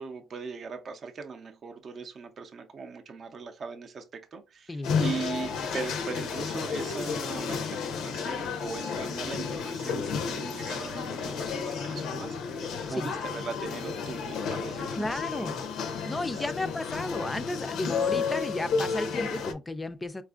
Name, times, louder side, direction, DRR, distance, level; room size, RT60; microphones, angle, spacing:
voice 1, 0.0-15.6 16.3-16.5, right 5 dB, 50° right, 0.5 m, -40 dB
sound 1, 4.8-19.5, left 5 dB, 85° left, 0.5 m, -32 dB
voice 2, 15.0-15.6 16.1-20.2, left 2 dB, 20° left, 0.4 m, -33 dB
4.2 x 2.4 x 2.3 m
cardioid pair, 95°, 0 cm